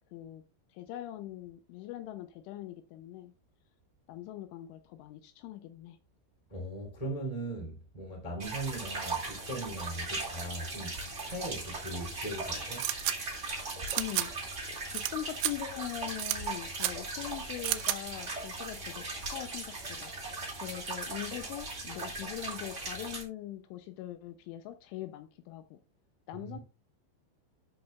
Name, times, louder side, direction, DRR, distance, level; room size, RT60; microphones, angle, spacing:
voice 1, 0.1-0.4 0.7-3.3 4.1-6.0 14.0-20.1 20.6-25.8 26.3-26.6, left 13 dB, 80° left, 3.0 m, -42 dB
voice 2, 6.5-11.0 11.2-12.9 26.3-26.6, right 1 dB, 10° left, 2.3 m, -39 dB
sound 1, 8.4-23.2, right 3 dB, 70° right, 0.7 m, -39 dB
sound 2, 12.8-13.2 13.9-14.3 14.9-15.1 15.4-15.5 16.2-16.4 16.8-16.9 17.6-18.0, right 16 dB, 90° right, 2.5 m, -30 dB
13.0 x 5.9 x 2.4 m
omnidirectional pair, 5.8 m